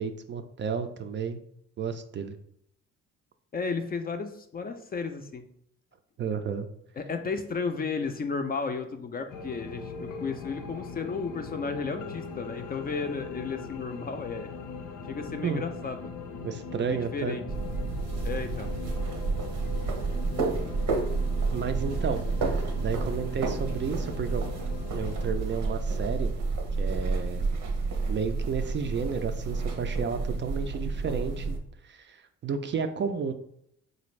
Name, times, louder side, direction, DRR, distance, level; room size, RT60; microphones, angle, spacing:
voice 1, 0.0-1.4 1.8-2.4 6.2-6.7 15.4-15.6 16.4-17.4 21.5-22.2 22.5-24.4 24.9-26.3 26.8-27.5 28.1-33.3, right 6 dB, 40° right, 8 dB, 0.4 m, -32 dB
voice 2, 3.5-5.4 7.0-14.5 15.1-16.1 16.8-17.4 18.2-18.7, left 4 dB, 30° left, 7 dB, 0.4 m, -33 dB
sound 1, 9.3-25.3, left 5 dB, 90° left, 0.6 m, -40 dB
sound 2, 17.5-31.6, right 3 dB, 75° right, 0.8 m, -30 dB
4.1 x 2.5 x 3.1 m, 0.71 s
cardioid pair, 90°, 30 cm